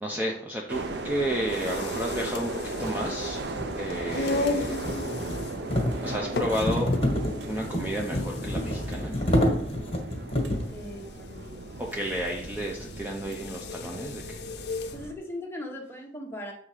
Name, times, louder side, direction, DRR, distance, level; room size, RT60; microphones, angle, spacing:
voice 1, 0.0-3.4 3.7-4.9 6.0-6.9 7.5-9.1 11.8-14.4, equal, 10° right, -1 dB, 0.5 m, -32 dB
sound 1, 0.7-15.1, right 2 dB, 70° right, 0.7 m, -37 dB
sound 2, 1.5-15.0, left 3 dB, 65° left, 0.5 m, -37 dB
sound 3, 1.9-2.0 2.7-10.8, left 1 dB, 35° left, 1.5 m, -29 dB
voice 2, 10.7-11.7 14.9-16.5, left 1 dB, 15° left, 0 dB, 1.0 m, -39 dB
7.0 x 3.6 x 4.9 m, 0.63 s
head